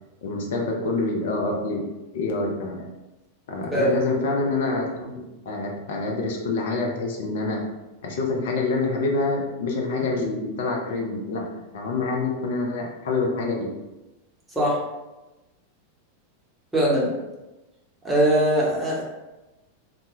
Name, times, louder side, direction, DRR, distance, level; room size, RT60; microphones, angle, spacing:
voice 1, 0.2-1.8 2.1-2.9 3.5-7.7 8.0-11.5 11.7-13.7, left 3 dB, 55° left, 0 dB, 0.5 m, -26 dB
voice 2, 16.7-17.1 18.0-19.0, right 1 dB, 5° right, -6 dB, 0.8 m, -21 dB
2.1 x 2.1 x 2.9 m, 1.0 s
figure-of-eight pair, 90°, 0 cm